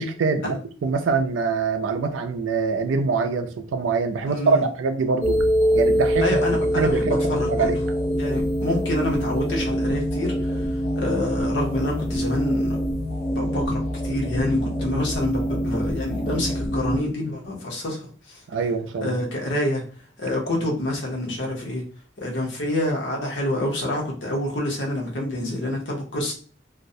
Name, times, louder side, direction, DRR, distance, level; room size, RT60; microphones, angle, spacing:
voice 1, 0.0-5.4 5.7-6.3 6.8-7.8 18.5-19.2, right 4 dB, 90° right, 6 dB, 0.4 m, -24 dB
voice 2, 4.3-4.6 6.2-7.7 8.2-12.8 13.3-18.4 19.0-19.8 20.2-21.8 22.2-26.3, left 1 dB, 75° left, 0 dB, 0.8 m, -27 dB
sound 1, 5.2-17.0, equal, 35° left, 0.7 m, -24 dB
2.3 x 2.0 x 2.6 m, 0.41 s
head